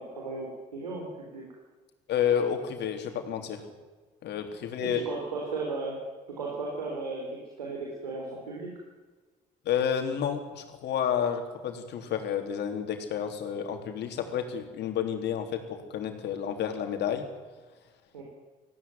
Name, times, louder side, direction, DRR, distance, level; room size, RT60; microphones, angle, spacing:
voice 1, 0.0-1.4 4.8-6.0 6.4-8.7 18.1-18.2, right 3 dB, 90° right, -2 dB, 3.8 m, -36 dB
voice 2, 2.1-3.6 4.2-5.0 9.7-17.3, left 8 dB, 60° left, 6 dB, 3.4 m, -30 dB
19.0 x 15.5 x 9.4 m, 1.3 s
hypercardioid pair, 55°, 20 cm